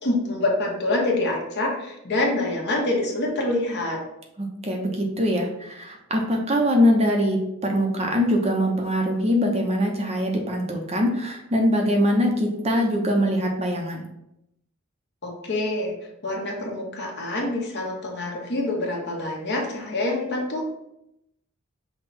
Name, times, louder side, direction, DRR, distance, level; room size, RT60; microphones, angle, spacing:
voice 1, 0.0-4.0 15.2-15.9 16.2-20.7, left 2 dB, 55° left, -1 dB, 1.1 m, -26 dB
voice 2, 4.4-14.1, equal, 30° right, 2 dB, 0.7 m, -23 dB
5.6 x 2.2 x 4.1 m, 0.83 s
head